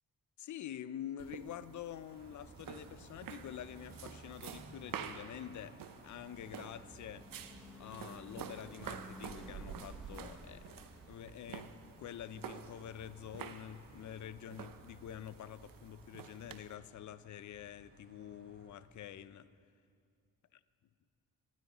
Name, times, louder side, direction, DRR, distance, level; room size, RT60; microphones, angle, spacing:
voice 1, 0.4-7.3 7.8-10.6 11.1-19.5, left 10 dB, 55° left, 0.5 m, -47 dB
sound 1, 1.2-16.8, right 8 dB, 70° right, 0.7 m, -50 dB
Car passing by, 2.0-19.3, right 2 dB, 25° right, 1.3 m, -59 dB
Car passing by / Truck / Engine, 6.5-14.6, equal, ahead, 1.2 m, -56 dB
18.5 x 13.0 x 3.0 m
cardioid pair, 115°, 35 cm